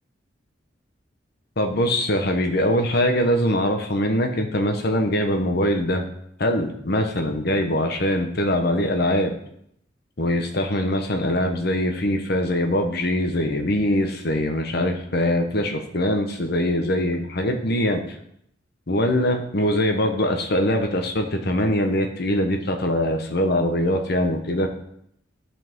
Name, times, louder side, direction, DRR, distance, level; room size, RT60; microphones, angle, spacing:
voice 1, 1.6-6.0 6.4-9.3 10.2-18.0 18.9-24.7, left 1 dB, 55° left, 5 dB, 1.1 m, -22 dB
11.0 x 5.8 x 3.7 m, 0.72 s
head